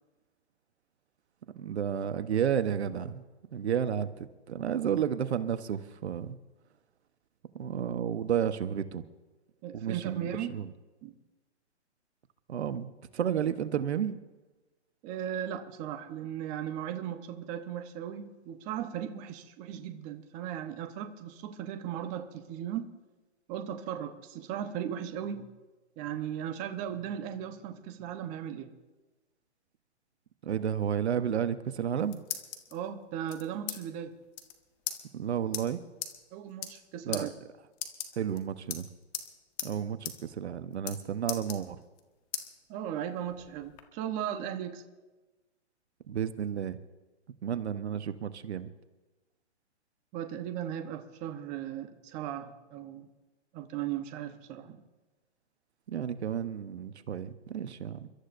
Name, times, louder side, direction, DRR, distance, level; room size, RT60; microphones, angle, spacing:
voice 1, 1.6-3.2 3.5-4.1 4.5-6.4 7.5-9.0 9.7-10.7 12.5-12.9 13.1-14.2 30.4-32.2 35.1-35.8 37.0-37.3 38.2-38.9 39.6-41.8 46.1-46.8 47.4-48.7 55.9-58.1, right 8 dB, 65° right, 11 dB, 1.1 m, -31 dB
voice 2, 9.6-10.5 11.0-11.1 15.0-22.9 23.5-25.5 26.0-28.7 32.7-34.1 36.3-37.3 42.7-44.8 50.1-53.1 53.5-54.8, right 10 dB, 20° right, 7 dB, 1.0 m, -37 dB
sound 1, 31.7-32.7 33.3-33.8 34.1-34.2 34.3-34.5 34.9-35.0 35.5-35.6 36.0-36.1 36.5-36.8 37.1-37.2 37.7-38.4 38.7-39.3 39.6-39.7 40.0-40.2 40.4-41.0 41.3-42.0 42.3-42.5 43.0-43.8, left 11 dB, 30° left, 1.6 m, -37 dB
29.5 x 13.5 x 2.6 m, 1.2 s
hypercardioid pair, 145°, 35 cm